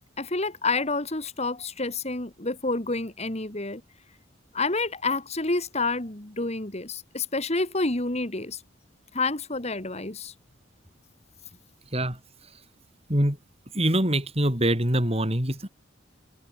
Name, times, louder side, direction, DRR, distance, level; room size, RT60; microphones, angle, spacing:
voice 1, 0.2-3.8 4.5-8.6 9.1-10.3, left 3 dB, 35° left, 2.5 m, -28 dB
voice 2, 13.7-15.7, right 1 dB, 30° right, 5.7 m, -24 dB
head